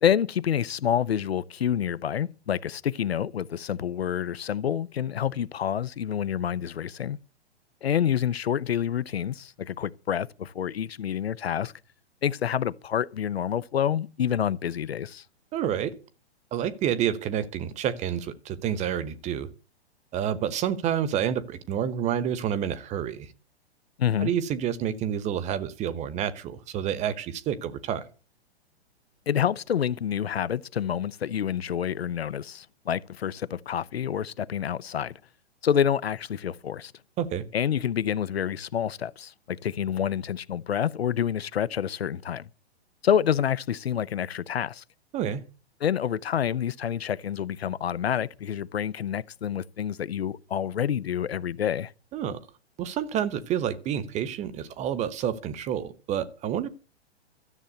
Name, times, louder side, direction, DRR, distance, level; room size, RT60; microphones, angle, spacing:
voice 1, 0.0-7.2 7.8-11.7 12.2-15.2 24.0-24.3 29.3-35.2 35.6-36.9 37.5-42.5 43.0-44.8 45.8-51.9, left 9 dB, 70° left, 0.7 m, -28 dB
voice 2, 15.5-15.9 16.5-19.5 20.1-23.3 24.2-28.1 37.2-37.4 45.1-45.4 52.1-52.4 52.8-56.7, right 9 dB, 20° right, 1.1 m, -29 dB
13.0 x 7.5 x 8.1 m
figure-of-eight pair, 115°, 32 cm